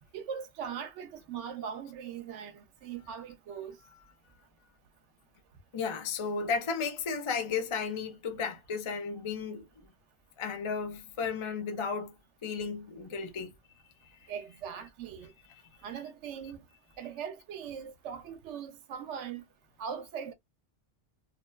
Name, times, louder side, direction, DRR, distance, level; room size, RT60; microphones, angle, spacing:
voice 1, 0.1-3.8 14.3-15.3 15.8-16.6 17.0-19.4 19.8-20.3, right 7 dB, 80° right, 0.9 m, -40 dB
voice 2, 5.7-9.7 10.4-12.1 12.4-13.5, left 5 dB, 45° left, 0.4 m, -34 dB
2.7 x 2.1 x 2.2 m
omnidirectional pair, 1.2 m